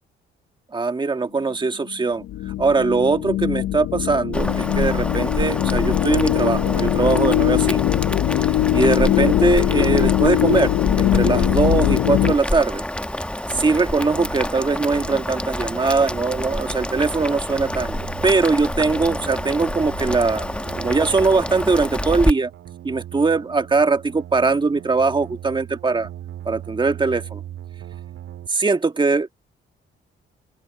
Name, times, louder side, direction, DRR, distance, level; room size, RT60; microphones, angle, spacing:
voice 1, 0.7-7.8 8.7-12.8 13.5-18.0 18.2-20.5 20.8-22.5 22.8-26.1 26.4-27.4 28.5-29.3, right 4 dB, 25° right, 1.6 m, -21 dB
sound 1, 2.2-12.3, left 14 dB, 75° left, 0.6 m, -21 dB
Boiling, 4.3-22.3, left 1 dB, 5° left, 1.2 m, -27 dB
sound 2, 13.5-28.5, right 12 dB, 75° right, 5.8 m, -39 dB
open air
cardioid pair, 90°, 20 cm